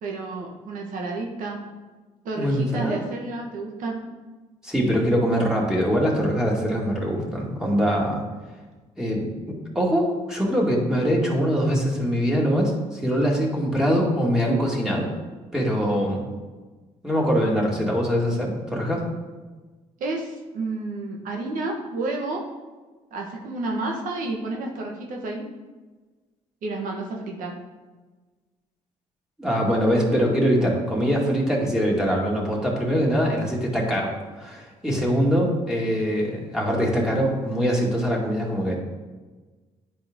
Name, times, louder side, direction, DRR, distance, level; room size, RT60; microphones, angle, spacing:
voice 1, 0.0-1.6 2.2-4.0 20.0-22.4 23.1-25.4 26.6-27.5, right 2 dB, 70° right, 1 dB, 1.4 m, -30 dB
voice 2, 2.4-3.0 4.6-8.2 9.0-15.1 15.5-16.3 17.0-19.0 29.4-38.8, equal, 5° right, -3 dB, 2.1 m, -23 dB
10.0 x 4.4 x 3.7 m, 1.3 s
cardioid pair, 80°, 14 cm